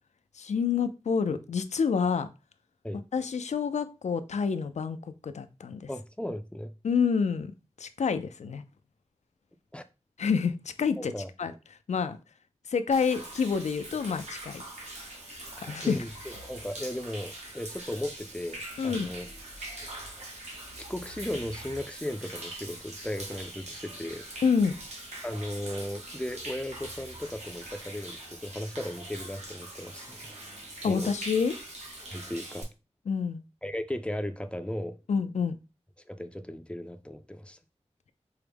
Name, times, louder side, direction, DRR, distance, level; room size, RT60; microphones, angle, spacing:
voice 1, 0.4-2.3 3.1-5.9 6.8-7.5 7.8-8.6 10.2-11.1 11.4-11.5 11.9-12.2 12.7-14.6 15.6-16.0 18.8-19.1 24.4-24.7 30.8-31.6 33.1-33.4 35.1-35.6, left 6 dB, 85° left, 0.4 m, -28 dB
voice 2, 5.9-6.7 9.7-9.9 11.0-11.3 15.8-16.1 16.5-19.3 20.8-24.3 25.2-30.3 30.9-31.1 32.1-32.7 33.6-35.0 36.1-37.6, left 1 dB, 10° left, 0.4 m, -36 dB
Human voice / Rain / Stream, 12.9-32.6, right 1 dB, 75° right, 1.2 m, -43 dB
4.6 x 2.1 x 3.3 m
wide cardioid pair, 80°, 12 cm